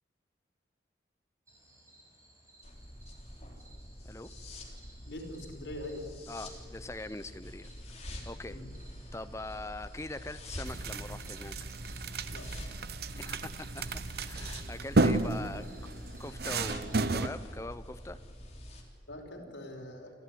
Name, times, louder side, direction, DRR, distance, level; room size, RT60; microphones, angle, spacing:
sound 1, 1.5-17.1, right 1 dB, 15° right, 6.1 m, -60 dB
sound 2, 2.6-18.8, equal, 35° left, 3.6 m, -46 dB
voice 1, 5.1-6.1 8.5-8.8 12.3-12.6 19.1-20.1, left 1 dB, 85° left, 1 dB, 4.8 m, -43 dB
voice 2, 6.3-8.6 9.1-11.6 13.2-15.9 16.2-18.2, left 2 dB, 15° left, 12 dB, 0.7 m, -43 dB
sound 3, 10.7-17.3, right 3 dB, 55° right, 0.9 m, -32 dB
29.0 x 13.5 x 9.5 m, 2.6 s
head